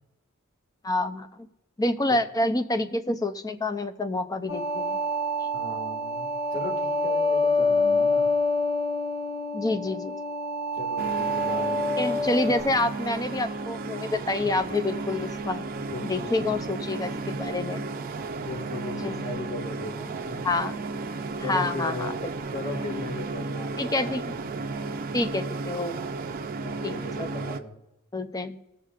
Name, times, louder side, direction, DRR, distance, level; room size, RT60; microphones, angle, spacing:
voice 1, 0.8-1.3 1.8-5.0 7.7-8.1 9.5-10.2 12.0-15.7 16.0-17.8 19.0-19.1 20.4-20.7 21.5-22.3 23.8-24.3 25.1-26.0 26.8-27.3 28.1-28.6, left 2 dB, 15° left, 9 dB, 0.5 m, -28 dB
sound 1, 4.5-12.6, left 2 dB, 70° left, 1.2 m, -26 dB
voice 2, 5.5-8.3 10.8-11.8 15.8-16.7 18.4-20.5 21.4-22.1 22.5-24.7 26.6-27.7, left 1 dB, 40° left, 2 dB, 1.9 m, -37 dB
sound 2, 11.0-27.6, right 3 dB, 45° right, 0.5 m, -34 dB
19.5 x 7.3 x 2.5 m, 0.90 s
head